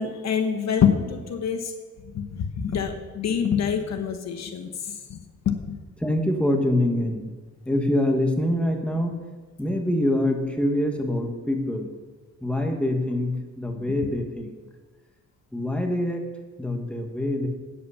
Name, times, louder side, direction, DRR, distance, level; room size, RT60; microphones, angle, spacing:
voice 1, 0.0-1.7 2.1-4.7 5.1-5.2 5.4-5.7, left 7 dB, 60° left, 6 dB, 1.1 m, -25 dB
voice 2, 6.0-7.3 7.6-9.2 9.6-11.9 12.4-14.6 15.5-16.2 16.6-17.5, left 1 dB, 5° left, 3 dB, 1.6 m, -25 dB
9.2 x 8.5 x 5.7 m, 1.3 s
cardioid pair, 90°, 30 cm